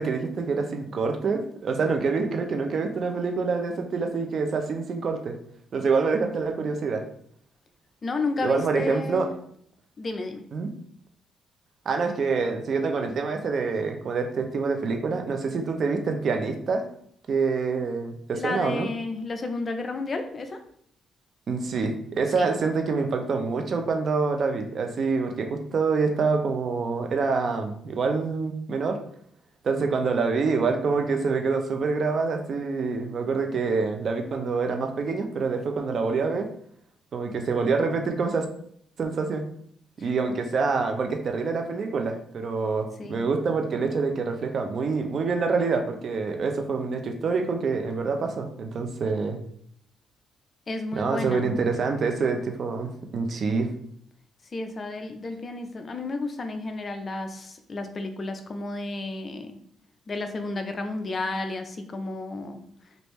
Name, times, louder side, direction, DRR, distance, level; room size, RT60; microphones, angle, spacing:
voice 1, 0.0-5.3 5.7-7.0 8.4-9.3 10.5-10.7 11.9-16.8 17.3-18.9 21.5-29.0 29.6-36.5 37.1-38.4 39.0-39.4 40.0-49.4 51.0-53.7, right 4 dB, 55° right, 5 dB, 0.6 m, -26 dB
voice 2, 8.0-9.3 10.0-10.4 18.3-20.6 22.3-22.5 43.0-43.3 50.7-51.5 54.5-59.6 60.1-62.6, left 2 dB, 40° left, 6 dB, 0.5 m, -32 dB
3.3 x 2.6 x 3.1 m, 0.64 s
cardioid pair, 90°, 0 cm